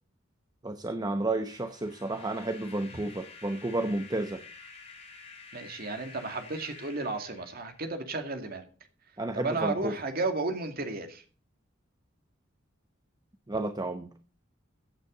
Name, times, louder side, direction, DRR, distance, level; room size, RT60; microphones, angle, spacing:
voice 1, 0.6-4.4 9.2-9.9 13.5-14.1, right 2 dB, 20° right, 8 dB, 0.8 m, -31 dB
sound 1, 1.0-8.1, left 4 dB, 30° left, 4.8 m, -50 dB
voice 2, 5.5-8.6 9.3-11.2, right 3 dB, 50° right, 6 dB, 2.3 m, -33 dB
16.0 x 8.4 x 3.9 m, 0.38 s
head